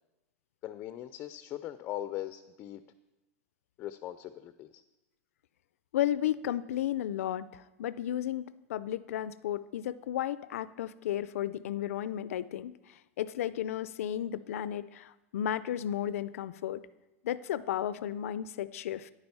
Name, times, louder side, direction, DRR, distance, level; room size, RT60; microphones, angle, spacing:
voice 1, 0.6-2.8 3.8-4.8, left 13 dB, 30° left, 12 dB, 0.4 m, -40 dB
voice 2, 5.9-16.8 17.2-19.1, left 11 dB, 85° left, 16 dB, 0.4 m, -33 dB
10.0 x 8.8 x 5.5 m, 1.0 s
supercardioid pair, 155°, 7 cm